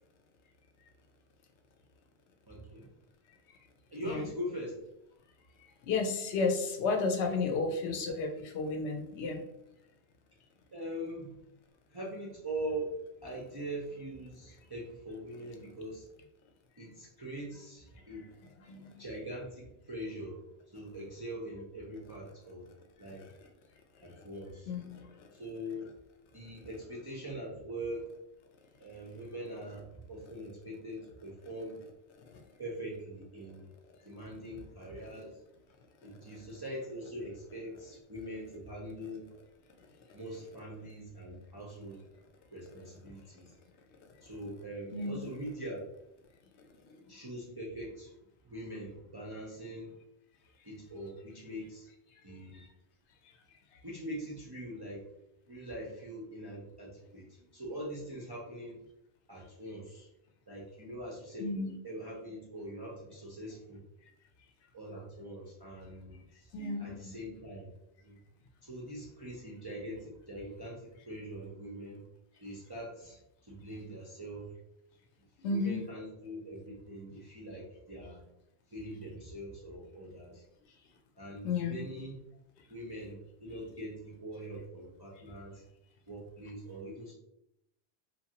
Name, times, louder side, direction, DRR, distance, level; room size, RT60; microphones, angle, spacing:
voice 1, 2.5-2.9 3.9-4.7 7.8-7.9 10.7-11.3 11.9-12.9 13.2-16.1 16.8-18.3 19.0-20.4 20.7-22.7 23.0-23.2 24.0-24.7 25.3-25.9 26.3-28.1 28.8-31.8 32.6-33.7 34.0-35.4 36.0-39.3 40.1-42.0 42.5-43.5 44.2-45.8 47.1-48.2 48.4-50.0 50.6-51.9 52.2-52.6 53.8-55.1 55.5-58.8 59.3-60.1 60.5-61.5 61.8-63.8 64.7-67.7 68.0-68.2 68.6-72.0 72.4-74.5 75.5-78.2 78.7-80.4 81.2-82.2 82.7-85.6 86.1-87.1, right 1 dB, 40° right, -5 dB, 0.3 m, -42 dB
voice 2, 5.8-9.4 18.7-19.0 24.7-24.9 44.9-45.2 52.5-52.7 61.4-61.7 66.5-67.1 75.4-75.8 81.4-81.8, left 4 dB, 80° left, 4 dB, 0.9 m, -32 dB
2.9 x 2.3 x 2.8 m, 0.82 s
omnidirectional pair, 1.1 m